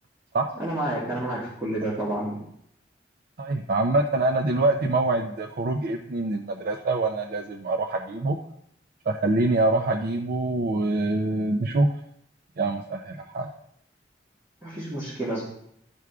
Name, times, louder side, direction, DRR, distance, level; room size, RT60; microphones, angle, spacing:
voice 1, 0.6-2.3 14.6-15.4, right 1 dB, 15° right, -8 dB, 1.6 m, -29 dB
voice 2, 3.4-8.4 9.1-11.9 12.6-13.5, right 2 dB, 55° right, 4 dB, 0.4 m, -25 dB
13.5 x 4.7 x 2.3 m, 0.74 s
head